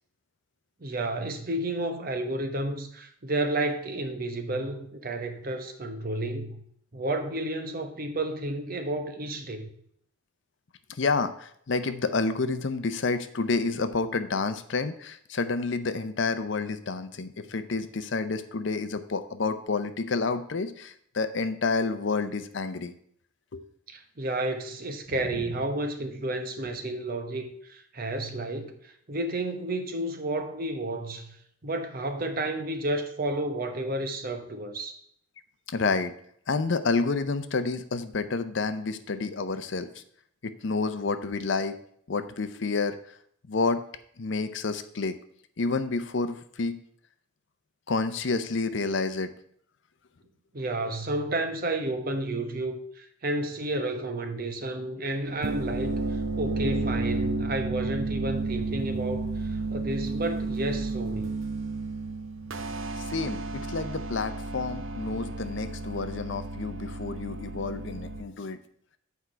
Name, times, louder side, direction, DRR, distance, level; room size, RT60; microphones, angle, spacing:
voice 1, 0.8-6.6 6.9-9.7 23.9-31.4 31.6-34.9 50.5-61.3, right 1 dB, 45° right, 6 dB, 1.0 m, -31 dB
voice 2, 10.9-22.9 23.5-23.6 25.3-25.4 35.7-36.1 36.5-40.0 40.4-41.8 42.1-42.9 43.5-43.8 44.2-45.2 45.6-46.8 47.9-49.3 63.0-68.6, left 4 dB, 60° left, 11 dB, 0.6 m, -29 dB
sound 1, 55.3-68.2, right 3 dB, 70° right, 0.8 m, -32 dB
8.3 x 4.7 x 5.6 m, 0.66 s
head